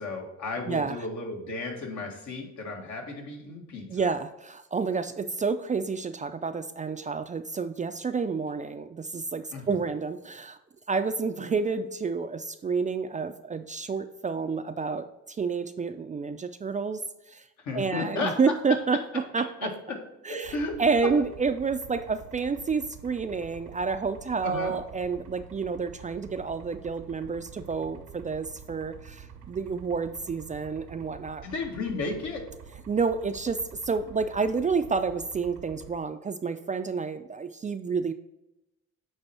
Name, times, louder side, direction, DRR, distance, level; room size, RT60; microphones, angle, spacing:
voice 1, 0.0-4.1 9.5-9.8 17.6-18.8 19.6-20.0 20.3-21.1 24.4-24.7 31.4-32.4, left 3 dB, 70° left, 1 dB, 1.7 m, -34 dB
voice 2, 0.7-1.0 3.9-10.6 10.9-17.0 17.3-17.4 17.7-19.0 19.3-19.7 20.2-31.4 32.9-38.1, right 5 dB, 25° right, 9 dB, 0.4 m, -29 dB
sound 1, 20.4-36.0, right 7 dB, 80° right, 0.8 m, -48 dB
8.9 x 3.4 x 4.3 m, 0.91 s
cardioid pair, 90°, 30 cm